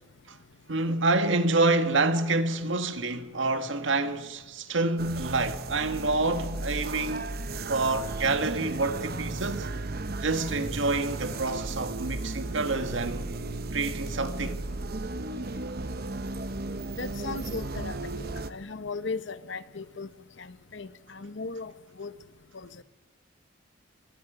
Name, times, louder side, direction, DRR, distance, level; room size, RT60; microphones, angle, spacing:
voice 1, 0.7-7.3 7.7-9.7 10.2-13.3 13.7-14.6, right 2 dB, 75° right, 1.7 m, -27 dB
sound 1, 5.0-18.5, right 2 dB, 50° right, 0.9 m, -35 dB
voice 2, 16.9-18.0 18.5-20.1 20.4-21.7 22.0-22.1 22.5-22.8, left 4 dB, 65° left, 1.0 m, -37 dB
29.0 x 24.0 x 5.0 m
head